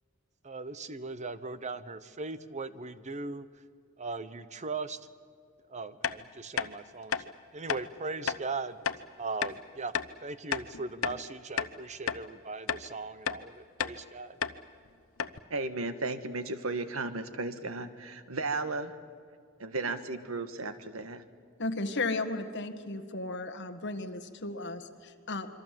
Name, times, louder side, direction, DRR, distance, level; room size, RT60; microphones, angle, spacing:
voice 1, 0.4-3.5 4.0-5.0 5.7-7.2 7.5-8.8 9.2-9.9 10.2-14.4, right 3 dB, 35° right, 13 dB, 1.0 m, -39 dB
sound 1, 6.0-6.2 6.6-6.7 7.1-7.3 7.7-7.8 8.3-8.4 8.9-9.0 9.4-9.6 9.9-10.1 10.5-11.2 11.6-11.7 12.1-12.2 12.7-12.9 13.3-13.4 13.8-14.0 14.4-14.6 14.9-15.0 15.2-15.4, left 7 dB, 85° left, 0.8 m, -32 dB
voice 2, 15.5-18.9 19.6-21.2, right 3 dB, 85° right, 10 dB, 1.6 m, -34 dB
voice 3, 21.6-25.5, left 2 dB, 60° left, 9 dB, 1.7 m, -35 dB
26.5 x 24.5 x 7.6 m, 2.2 s
head